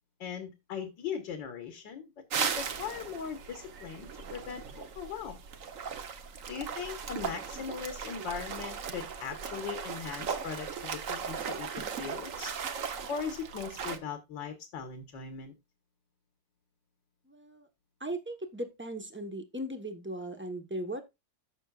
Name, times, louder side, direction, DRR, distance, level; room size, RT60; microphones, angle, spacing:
voice 1, 0.2-2.1 2.4-5.4 6.5-12.5 13.1-15.5, left 7 dB, 70° left, 6 dB, 1.9 m, -39 dB
sound 1, 2.3-14.0, right 6 dB, 50° right, 1.2 m, -37 dB
voice 2, 17.3-17.7 18.0-21.0, right 1 dB, 10° right, 6 dB, 0.6 m, -38 dB
14.0 x 6.3 x 2.4 m, 0.22 s
omnidirectional pair, 2.2 m